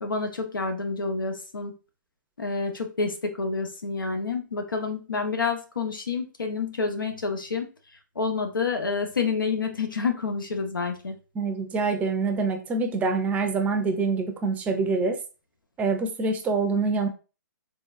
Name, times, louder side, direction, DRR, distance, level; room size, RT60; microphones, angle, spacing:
voice 1, 0.0-1.7 2.4-7.7 8.2-11.1, left 4 dB, 90° left, 5 dB, 1.0 m, -28 dB
voice 2, 11.3-15.2 15.8-17.1, right 4 dB, 15° right, 5 dB, 0.5 m, -25 dB
3.8 x 3.5 x 2.4 m, 0.33 s
hypercardioid pair, 135°, 11 cm